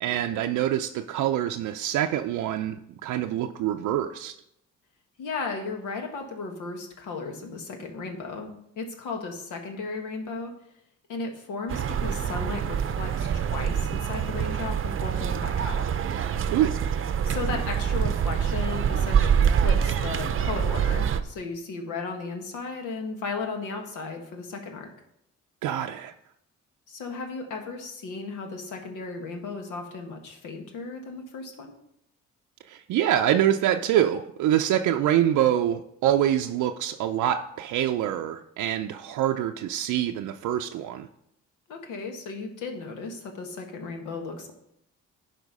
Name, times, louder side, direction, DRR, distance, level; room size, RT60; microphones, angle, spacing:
voice 1, 0.0-4.4 16.5-16.7 25.6-26.1 32.7-41.1, right 11 dB, 85° right, 5 dB, 0.5 m, -25 dB
voice 2, 5.2-8.5 8.8-10.5 11.1-15.8 17.2-24.9 26.9-31.7 41.7-44.5, left 4 dB, 90° left, 3 dB, 1.6 m, -35 dB
sound 1, 11.7-21.2, right 8 dB, 45° right, 0.6 m, -25 dB
11.0 x 4.5 x 5.3 m, 0.77 s
cardioid pair, 90°, 30 cm